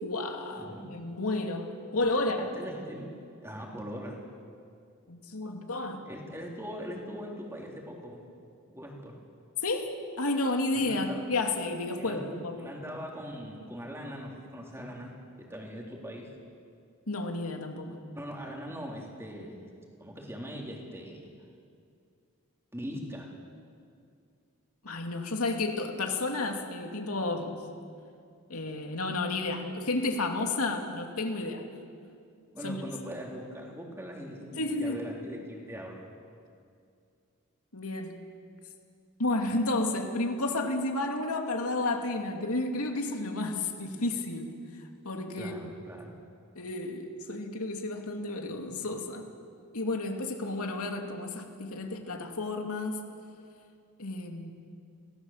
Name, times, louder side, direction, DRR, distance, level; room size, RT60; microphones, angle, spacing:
voice 1, 0.0-2.5 5.1-6.1 9.6-12.7 17.1-18.0 24.8-27.6 28.5-31.6 32.6-32.8 34.6-35.0 37.7-38.1 39.2-44.5 45.0-45.7 46.6-49.3 49.7-53.0 54.0-54.5, left 2 dB, 75° left, 3 dB, 2.6 m, -31 dB
voice 2, 0.5-1.0 2.0-2.3 2.5-3.1 3.4-4.2 6.0-8.2 8.7-9.2 10.7-11.2 12.0-12.3 12.6-16.3 18.1-19.7 20.0-21.4 22.7-23.3 32.5-36.1 45.3-46.2, equal, 10° right, -1 dB, 3.4 m, -41 dB
26.5 x 17.5 x 7.4 m, 2.3 s
head